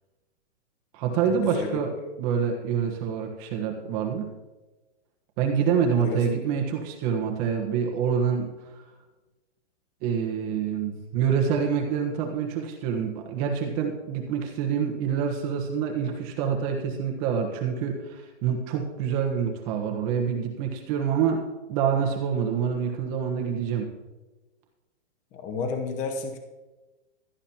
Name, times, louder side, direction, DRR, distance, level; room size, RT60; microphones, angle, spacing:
voice 1, 0.9-1.9 2.2-4.3 5.4-8.5 8.8-8.9 10.0-21.4 21.7-23.9, right 7 dB, 30° right, 2 dB, 1.4 m, -26 dB
voice 2, 1.4-1.8 6.0-6.2 25.3-26.4, left 4 dB, 20° left, 5 dB, 1.0 m, -31 dB
17.0 x 11.5 x 3.0 m, 1.2 s
hypercardioid pair, 155°, 35 cm